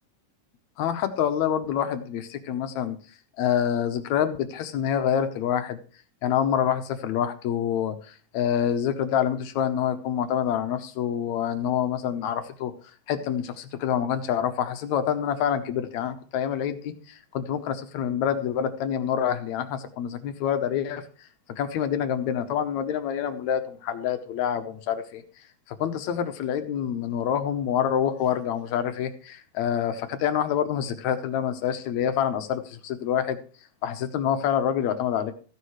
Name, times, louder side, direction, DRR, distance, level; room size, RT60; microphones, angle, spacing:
voice 1, 0.8-3.0 3.4-5.8 6.2-12.7 13.1-21.0 21.6-25.2 25.7-33.4 33.8-35.3, left 9 dB, 80° left, 9 dB, 2.2 m, -27 dB
15.0 x 10.5 x 3.2 m, 0.39 s
omnidirectional pair, 3.3 m